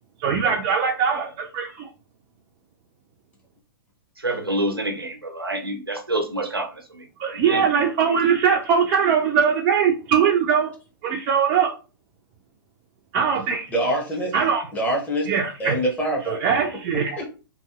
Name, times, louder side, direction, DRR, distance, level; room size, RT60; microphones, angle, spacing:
voice 1, 0.2-1.9 7.2-10.7 11.0-11.7 13.1-13.7 14.3-14.7 15.3-15.7 16.3-17.2, right 7 dB, 30° right, -1 dB, 0.4 m, -21 dB
voice 2, 4.2-7.0 7.4-7.6, right 1 dB, 85° right, 3 dB, 0.8 m, -27 dB
voice 3, 13.7-14.3 14.7-15.3 15.6-16.4 17.2-17.3, right 1 dB, 10° left, -1 dB, 0.8 m, -24 dB
2.8 x 2.6 x 2.4 m, 0.34 s
figure-of-eight pair, 110°, 12 cm